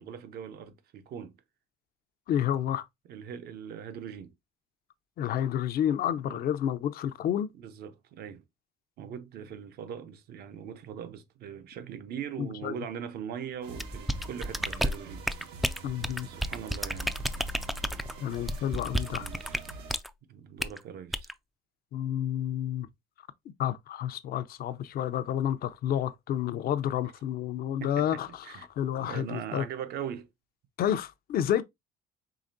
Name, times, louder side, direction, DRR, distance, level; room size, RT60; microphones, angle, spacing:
voice 1, 0.0-1.4 3.1-4.3 6.3-6.4 7.5-8.4 9.0-15.2 16.2-17.2 19.1-19.6 20.3-21.3 27.8-28.7 29.0-30.3, right 8 dB, 70° right, 0.8 m, -40 dB
voice 2, 2.3-2.8 5.2-7.5 12.4-12.7 15.8-16.3 18.2-19.3 21.9-22.9 23.6-28.4 28.8-29.6 30.8-31.6, left 10 dB, 60° left, 0.6 m, -30 dB
sound 1, 13.6-20.0, right 3 dB, 90° right, 1.3 m, -45 dB
sound 2, 13.8-20.1 20.6-20.8 21.1-21.3, equal, ahead, 0.3 m, -31 dB
4.9 x 3.3 x 2.6 m
cardioid pair, 110°, 17 cm